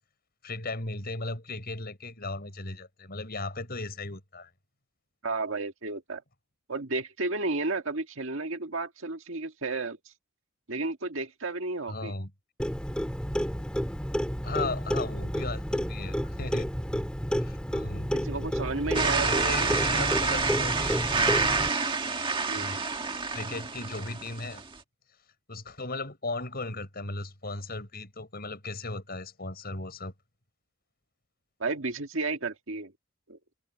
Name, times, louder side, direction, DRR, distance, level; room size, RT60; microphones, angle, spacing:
voice 1, 0.4-4.5 11.9-12.3 14.4-16.7 17.4-18.1 19.2-21.1 22.5-22.8 23.3-24.6 25.5-30.1, left 2 dB, 45° left, 5.9 m, -36 dB
voice 2, 5.2-6.2 6.7-10.0 10.7-12.1 18.1-20.0 22.5-22.7 31.6-32.9 33.3-33.4, right 3 dB, 65° right, 1.9 m, -32 dB
Clock, 12.6-21.7, equal, 5° left, 3.3 m, -31 dB
sound 1, 18.9-24.7, right 4 dB, 25° right, 1.8 m, -28 dB
head